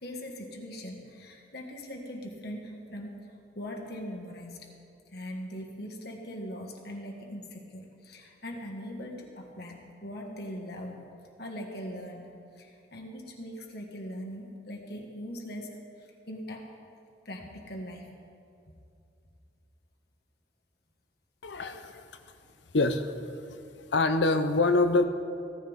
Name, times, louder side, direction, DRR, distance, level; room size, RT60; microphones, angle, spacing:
voice 1, 0.0-3.2 3.6-4.7 5.1-11.0 11.4-12.3 12.5-15.7 16.3-16.7 17.3-18.1, equal, 60° left, 1 dB, 1.7 m, -40 dB
voice 2, 21.4-22.0 22.7-23.3 23.9-25.1, left 2 dB, 75° left, 8 dB, 0.8 m, -25 dB
17.0 x 14.0 x 3.7 m, 2.5 s
head